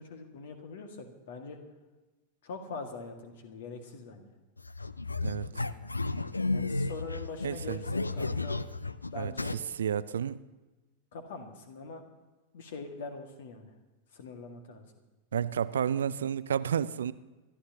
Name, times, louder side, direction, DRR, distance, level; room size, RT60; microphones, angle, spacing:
voice 1, 0.0-1.6 2.4-4.3 5.5-5.8 6.5-8.6 9.1-9.5 11.1-12.0 12.5-13.7 14.1-14.9, left 4 dB, 55° left, 1.9 m, -43 dB
sound 1, 4.6-9.6, left 3 dB, 80° left, 0.4 m, -33 dB
voice 2, 7.4-7.8 9.2-10.4 15.3-17.1, right 8 dB, 65° right, 0.4 m, -31 dB
26.5 x 12.5 x 2.9 m
figure-of-eight pair, 90°, 0 cm